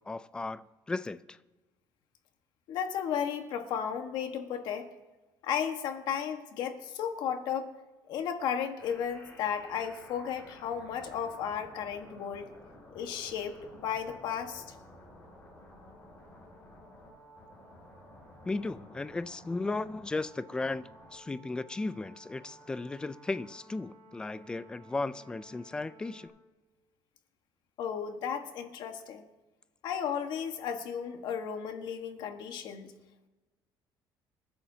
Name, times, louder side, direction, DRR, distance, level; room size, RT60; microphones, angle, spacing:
voice 1, 0.1-1.4 18.4-20.8 21.1-26.3, left 3 dB, 10° left, 0.4 m, -35 dB
voice 2, 2.7-4.9 5.4-7.7 8.1-12.5 12.9-14.6 27.8-29.2 29.8-32.9, left 8 dB, 65° left, 1.5 m, -34 dB
sound 1, 8.8-26.3, equal, 30° left, 6.0 m, -54 dB
27.5 x 11.0 x 2.8 m
cardioid pair, 170°, 8 cm